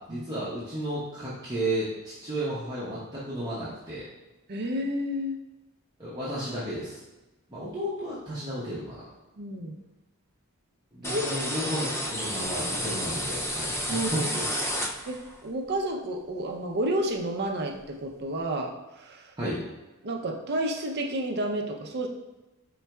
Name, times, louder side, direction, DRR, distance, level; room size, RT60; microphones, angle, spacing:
voice 1, 0.1-4.0 6.0-7.0 7.5-9.1 10.9-14.4 19.4-19.6, right 1 dB, 20° right, -10 dB, 0.8 m, -33 dB
voice 2, 4.5-5.4 9.4-9.7 11.0-11.3 13.9-14.3 15.1-19.3 20.0-22.1, right 1 dB, 50° right, 2 dB, 0.5 m, -31 dB
sound 1, 11.0-15.4, equal, 10° left, 0.3 m, -31 dB
4.4 x 3.9 x 2.3 m, 1.1 s
head